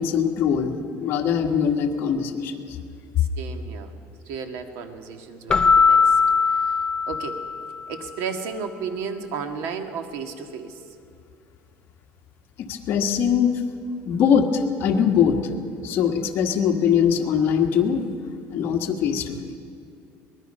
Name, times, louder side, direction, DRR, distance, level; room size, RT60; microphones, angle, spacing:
voice 1, 0.0-2.8 12.6-13.5 14.0-15.4 15.8-18.0 18.5-19.6, left 7 dB, 45° left, 3 dB, 1.6 m, -22 dB
voice 2, 3.2-4.0 4.3-6.2 6.5-6.8 7.1-7.4 7.9-10.8, right 5 dB, 75° right, 6 dB, 1.8 m, -33 dB
Keyboard (musical), 5.5-7.9, left 5 dB, 20° left, 0.4 m, -20 dB
23.5 x 20.5 x 5.5 m, 2.4 s
cardioid pair, 170°, 5 cm